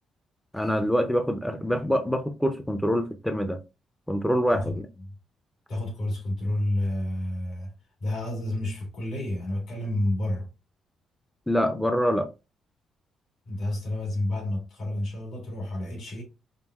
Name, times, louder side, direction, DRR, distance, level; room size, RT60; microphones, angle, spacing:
voice 1, 0.5-3.6 4.1-4.9 11.5-12.3, equal, 5° left, 0.4 m, -25 dB
voice 2, 5.7-7.7 8.0-10.5 13.5-16.2, left 1 dB, 65° left, 2.0 m, -30 dB
5.3 x 2.3 x 2.3 m
cardioid pair, 90°, 0 cm